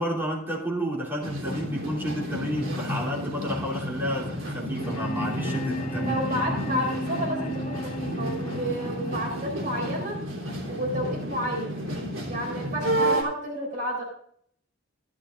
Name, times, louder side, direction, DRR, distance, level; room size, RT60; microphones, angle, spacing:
voice 1, 0.0-6.7, equal, 10° right, 2.9 m, -31 dB
sound 1, 1.2-13.2, equal, 75° right, 3.1 m, -31 dB
sound 2, 4.8-10.8, equal, 35° left, 1.2 m, -34 dB
voice 2, 6.0-10.2 10.7-11.7 12.3-14.0, equal, 45° right, 4.0 m, -31 dB
15.0 x 11.0 x 2.5 m
head